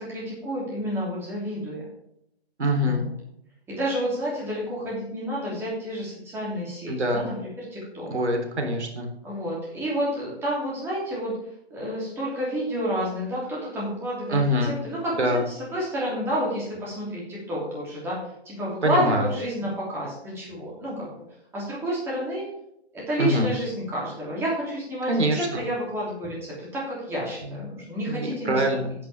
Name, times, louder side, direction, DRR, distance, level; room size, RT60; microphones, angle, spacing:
voice 1, 0.0-1.9 2.8-3.1 3.7-8.1 9.2-11.3 11.7-18.2 18.4-21.1 21.5-22.4 22.9-28.6, equal, 5° right, -5 dB, 3.1 m, -30 dB
voice 2, 2.6-3.0 6.9-7.3 8.1-9.1 14.3-14.8 15.2-15.4 18.8-19.3 23.2-23.5 25.1-25.6 27.4-27.6 28.1-28.9, equal, 85° right, 2 dB, 3.6 m, -24 dB
10.0 x 10.0 x 3.6 m, 0.77 s
hypercardioid pair, 155°, 33 cm